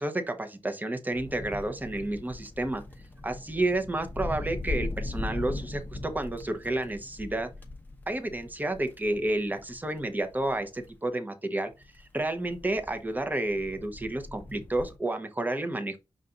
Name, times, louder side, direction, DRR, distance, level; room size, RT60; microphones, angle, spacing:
voice 1, 0.0-2.8 3.2-7.5 8.1-11.7 12.1-16.0, right 2 dB, 20° right, 0.9 m, -30 dB
sound 1, 1.1-10.9 11.8-15.0, left 2 dB, 20° left, 0.9 m, -39 dB
5.6 x 2.5 x 3.7 m
cardioid pair, 80°, 10 cm